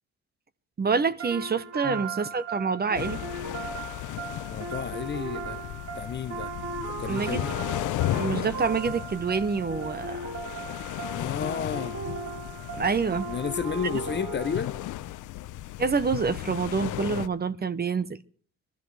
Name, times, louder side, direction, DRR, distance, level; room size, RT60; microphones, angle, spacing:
voice 1, 0.8-3.2 7.1-7.4 8.1-10.3 12.8-13.3 15.8-18.2, right 5 dB, 30° right, 1.0 m, -27 dB
sound 1, 1.2-15.1, right 4 dB, 55° right, 5.3 m, -37 dB
sound 2, 2.9-17.3, left 14 dB, 80° left, 0.8 m, -35 dB
voice 2, 4.5-5.7 5.9-6.5 6.9-7.6 11.1-12.0 13.3-14.8, left 7 dB, 35° left, 0.8 m, -32 dB
23.5 x 13.0 x 3.4 m
cardioid pair, 90°, 30 cm